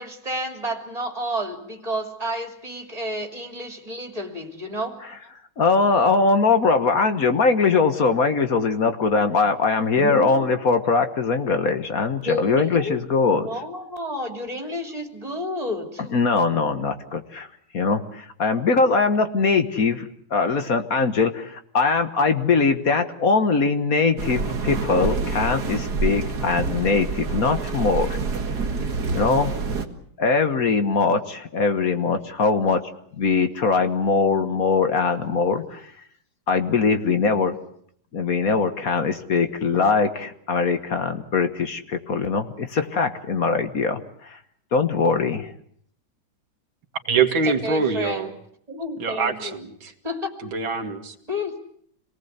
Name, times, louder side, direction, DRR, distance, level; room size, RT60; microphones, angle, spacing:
voice 1, 0.0-5.0 10.0-10.5 12.2-13.0 13.3-16.0 47.4-48.3 48.7-49.5 50.0-50.5 51.3-51.6, equal, 20° right, 3 dB, 3.0 m, -30 dB
voice 2, 5.6-13.6 16.0-17.5 17.7-28.2 29.1-29.5 30.2-32.8 33.2-35.8 36.5-37.5 38.1-44.4 44.7-45.5, left 4 dB, 50° left, 8 dB, 1.6 m, -21 dB
sound 1, 24.2-29.9, right 4 dB, 55° right, 2.2 m, -27 dB
voice 3, 47.1-48.3 49.0-49.9 50.5-51.1, right 5 dB, 90° right, 5 dB, 2.7 m, -24 dB
27.0 x 19.0 x 8.2 m, 0.67 s
omnidirectional pair, 2.1 m